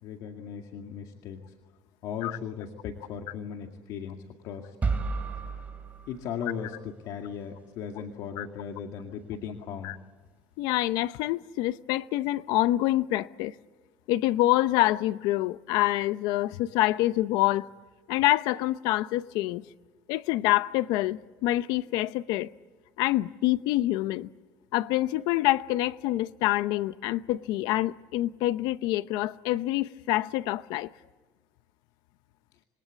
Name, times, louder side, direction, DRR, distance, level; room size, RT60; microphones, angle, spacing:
voice 1, 0.0-1.6 2.0-4.2 4.4-5.0 6.1-10.0, left 7 dB, 70° left, 2.2 m, -37 dB
sound 1, 4.8-6.8, right 4 dB, 20° right, 3.2 m, -32 dB
voice 2, 10.6-13.6 14.1-17.7 18.1-19.6 20.1-22.5 23.0-24.3 24.7-30.9, left 16 dB, 85° left, 0.7 m, -26 dB
27.0 x 23.0 x 8.4 m
cardioid pair, 145°, 7 cm